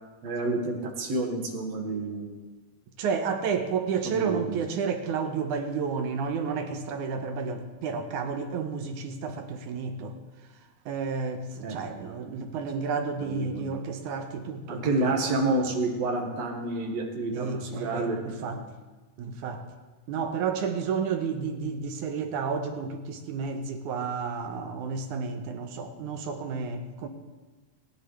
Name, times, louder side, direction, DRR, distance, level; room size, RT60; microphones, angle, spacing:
voice 1, 0.2-2.3 4.0-4.6 11.6-12.1 13.2-13.8 14.7-18.7, right 2 dB, 50° right, 1 dB, 2.6 m, -29 dB
voice 2, 3.0-10.1 10.9-15.4 17.3-18.6 19.2-19.6 20.1-27.1, right 5 dB, 70° right, 5 dB, 2.2 m, -31 dB
26.5 x 11.0 x 3.4 m, 1.3 s
omnidirectional pair, 4.1 m